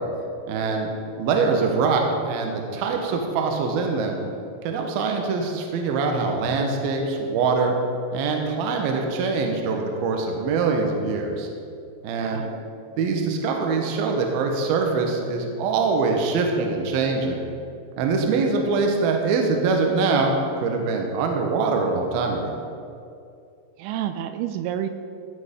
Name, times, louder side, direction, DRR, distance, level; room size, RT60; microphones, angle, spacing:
voice 1, 0.5-0.9 1.2-4.2 4.6-7.8 8.1-11.5 12.0-12.4 13.0-17.4 18.0-20.3 20.6-22.6, right 4 dB, 70° right, 2 dB, 2.5 m, -23 dB
voice 2, 12.2-12.7 23.8-24.9, right 11 dB, 85° right, 9 dB, 3.0 m, -29 dB
14.5 x 6.7 x 5.2 m, 2.4 s
omnidirectional pair, 5.6 m